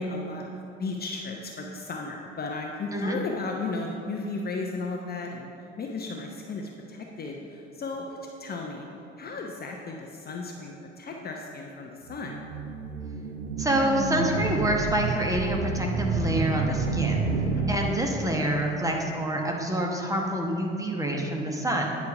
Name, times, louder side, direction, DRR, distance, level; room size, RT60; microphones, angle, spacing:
voice 1, 0.0-5.5 5.8-8.9 9.2-12.4 17.3-17.7, left 3 dB, 25° left, 1 dB, 0.7 m, -35 dB
sound 1, 12.1-18.4, right 3 dB, 70° right, 0.7 m, -29 dB
voice 2, 13.6-17.3 17.7-22.0, right 1 dB, 10° right, 0 dB, 1.1 m, -27 dB
9.5 x 5.2 x 4.8 m, 2.7 s
figure-of-eight pair, 60°, 34 cm